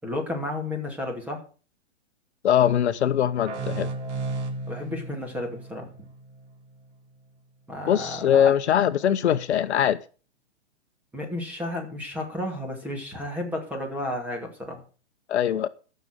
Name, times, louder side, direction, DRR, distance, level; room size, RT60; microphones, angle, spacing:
voice 1, 0.0-1.4 4.7-5.9 7.7-8.5 11.1-14.8, left 1 dB, 5° right, 2.3 m, -32 dB
voice 2, 2.4-3.9 7.9-10.0 15.3-15.7, left 10 dB, 70° left, 0.9 m, -22 dB
sound 1, 3.5-6.9, right 3 dB, 80° right, 3.6 m, -34 dB
13.5 x 6.8 x 6.6 m
hypercardioid pair, 160°, 35 cm